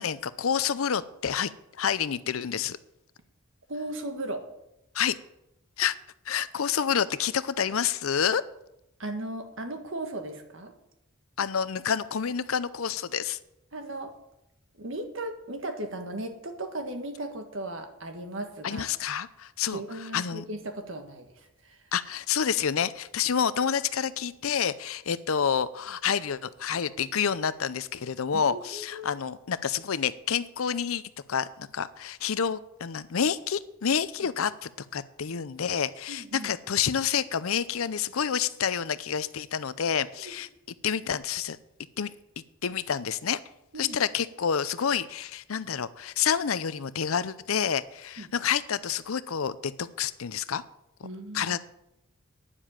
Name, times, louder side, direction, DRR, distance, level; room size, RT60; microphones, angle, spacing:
voice 1, 0.0-1.5 1.8-2.8 4.9-5.2 5.8-6.0 6.3-8.4 11.4-13.4 18.6-20.4 21.9-31.0 31.3-40.5 40.8-41.6 42.0-42.1 42.6-43.4 43.8-50.6 51.3-51.6, left 7 dB, 80° left, 15 dB, 0.6 m, -28 dB
voice 2, 3.7-4.4 9.0-10.7 13.7-14.1 14.7-18.9 19.7-21.8 28.3-29.2 36.1-36.5 40.2-40.3 43.7-44.0 48.2-48.3 51.0-51.6, right 1 dB, 65° right, 5 dB, 1.7 m, -37 dB
9.9 x 7.4 x 8.9 m, 0.85 s
head